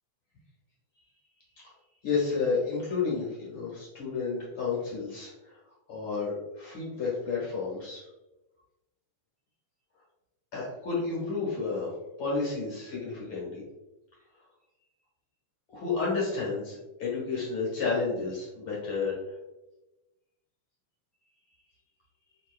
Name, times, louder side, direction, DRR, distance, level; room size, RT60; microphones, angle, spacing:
voice 1, 2.0-5.6 5.9-8.0 10.5-11.9 12.2-13.6 15.7-19.2, left 4 dB, 50° left, -5 dB, 1.9 m, -31 dB
5.6 x 3.7 x 2.3 m, 1.0 s
omnidirectional pair, 3.5 m